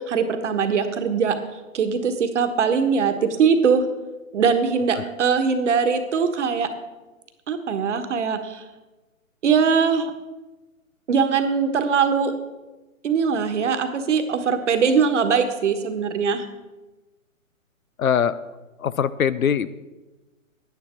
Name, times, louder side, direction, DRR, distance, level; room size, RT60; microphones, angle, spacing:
voice 1, 0.0-1.4 1.7-3.1 3.4-3.8 4.3-6.7 7.5-8.6 9.4-10.1 11.1-12.3 13.0-16.4, right 6 dB, 60° right, 8 dB, 1.4 m, -21 dB
voice 2, 18.0-18.4 18.8-19.7, left 8 dB, 85° left, 16 dB, 0.7 m, -22 dB
10.5 x 9.3 x 4.4 m, 1.1 s
hypercardioid pair, 135°, 41 cm